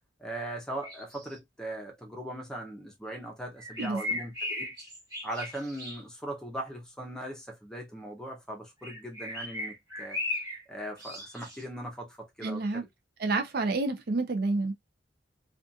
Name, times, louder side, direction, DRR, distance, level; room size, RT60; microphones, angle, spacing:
voice 1, 0.2-4.7 5.2-10.2 10.7-12.9, right 1 dB, 5° left, 0.6 m, -39 dB
sound 1, 0.8-1.4 3.6-6.0 8.8-10.6 11.0-11.6, left 2 dB, 20° right, 1.0 m, -37 dB
voice 2, 3.8-4.2 12.4-12.8 13.2-14.7, right 3 dB, 50° right, 0.4 m, -29 dB
2.4 x 2.3 x 2.6 m
head